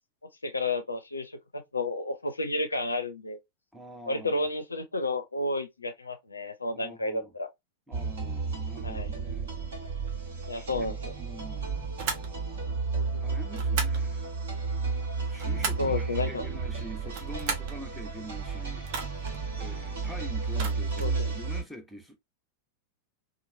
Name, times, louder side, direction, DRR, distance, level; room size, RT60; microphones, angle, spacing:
voice 1, 0.4-3.4 4.1-7.5 8.8-9.1 10.5-11.1 13.0-13.2 15.8-16.5 21.0-21.4, left 2 dB, 80° left, 0.4 m, -31 dB
voice 2, 3.7-4.5 6.7-7.3 7.9-9.5 10.5-11.9 13.2-14.3 15.3-18.9 19.6-22.2, right 1 dB, ahead, 0.7 m, -45 dB
sound 1, 7.9-21.6, right 4 dB, 65° right, 1.4 m, -32 dB
sound 2, 12.0-12.3 13.5-14.0 15.1-15.9 17.0-17.8 18.8-19.4 20.5-21.1, right 5 dB, 45° right, 0.6 m, -35 dB
2.9 x 2.4 x 2.6 m
figure-of-eight pair, 90°, 0 cm